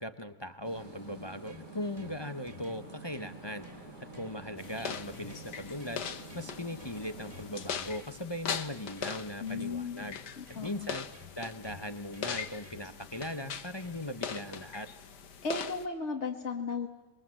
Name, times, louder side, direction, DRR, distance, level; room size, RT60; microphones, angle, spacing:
voice 1, 0.0-3.9 4.1-6.0 6.3-10.2 10.6-11.1 11.4-14.9, left 1 dB, 20° left, 10 dB, 0.7 m, -39 dB
sound 1, 0.6-7.7, right 2 dB, 50° right, 6.4 m, -48 dB
sound 2, 1.1-14.8, left 2 dB, 30° right, 4.2 m, -55 dB
sound 3, 4.6-15.9, left 7 dB, 75° left, 1.8 m, -41 dB
voice 2, 9.4-10.1 10.4-10.9 15.4-16.9, left 4 dB, 45° left, 1 dB, 1.9 m, -35 dB
27.5 x 22.0 x 7.6 m, 1.2 s
omnidirectional pair, 1.8 m